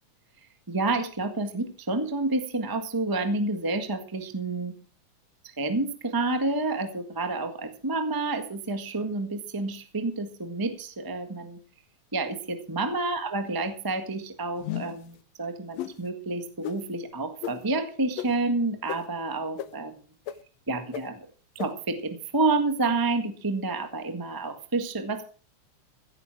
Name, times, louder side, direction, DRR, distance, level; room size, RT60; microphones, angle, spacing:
voice 1, 0.7-4.7 5.6-11.6 12.1-19.9 20.7-21.3 21.5-25.2, right 3 dB, 15° right, 7 dB, 0.8 m, -29 dB
sound 1, 14.6-15.1 15.8-15.9 16.6-16.8 17.4-17.5 18.2-18.3 18.9-19.0 19.6-19.7 20.3-20.4 20.9-21.0 21.6-21.7, left 12 dB, 70° left, 1.9 m, -33 dB
15.5 x 9.0 x 6.0 m, 0.39 s
omnidirectional pair, 3.4 m